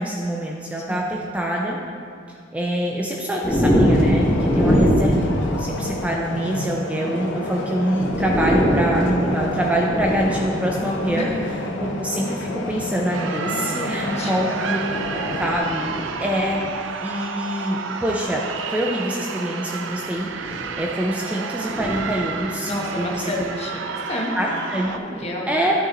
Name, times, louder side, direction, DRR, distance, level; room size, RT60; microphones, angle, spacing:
voice 1, 0.0-1.8 2.5-11.3 11.8-14.8 15.1-16.6 17.0-18.4 18.7-22.7 23.0-23.2 24.4-24.9 25.2-25.7, equal, 5° right, -1 dB, 0.5 m, -25 dB
voice 2, 0.7-1.2 11.1-11.4 13.4-14.6 17.2-17.4 22.7-25.5, left 1 dB, 35° left, -2 dB, 1.1 m, -30 dB
sound 1, 3.4-6.1 7.4-7.5 7.9-11.5 12.3-12.6 13.8-16.7 18.2-18.3 20.0-20.8 21.6-23.0, equal, 15° left, 1.5 m, -23 dB
sound 2, 3.8-15.6, left 1 dB, 75° left, 0.7 m, -30 dB
sound 3, 13.1-25.0, right 6 dB, 80° right, 0.4 m, -31 dB
11.0 x 4.4 x 3.8 m, 2.3 s
head